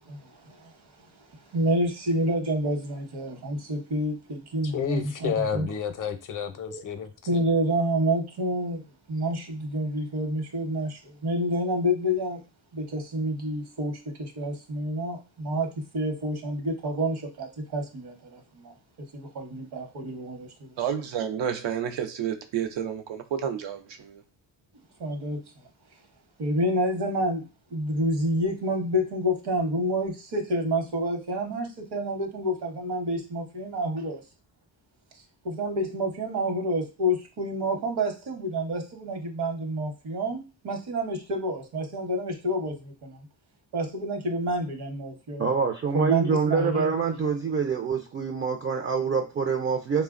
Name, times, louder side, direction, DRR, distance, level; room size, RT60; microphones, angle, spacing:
voice 1, 0.1-0.7 1.5-5.7 6.7-6.8 7.3-8.8 9.1-12.4 12.7-18.7 19.1-20.8 25.0-25.4 26.4-34.2 35.4-43.2 43.7-45.4 45.9-47.2, equal, 65° right, 0.9 m, -28 dB
voice 2, 4.6-7.4, left 7 dB, 50° left, 0.6 m, -30 dB
voice 3, 20.8-24.2, right 8 dB, 85° right, 0.6 m, -30 dB
voice 4, 45.4-50.0, right 6 dB, 30° right, 0.4 m, -26 dB
3.2 x 2.1 x 2.4 m
cardioid pair, 65°, 43 cm